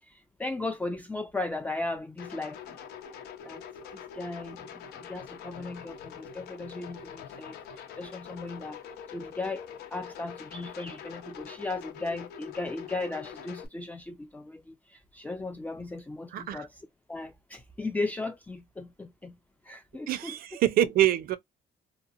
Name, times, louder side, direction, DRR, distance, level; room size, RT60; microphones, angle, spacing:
voice 1, 0.0-2.8 3.4-3.6 3.9-9.7 9.9-19.3 19.6-20.4 20.8-20.9, left 2 dB, 10° left, 0.4 m, -37 dB
sound 1, 2.2-13.7, left 7 dB, 75° left, 0.8 m, -44 dB
voice 2, 16.3-16.7 20.1-21.4, right 13 dB, 60° right, 0.5 m, -25 dB
2.8 x 2.1 x 2.5 m
cardioid pair, 110°, 17 cm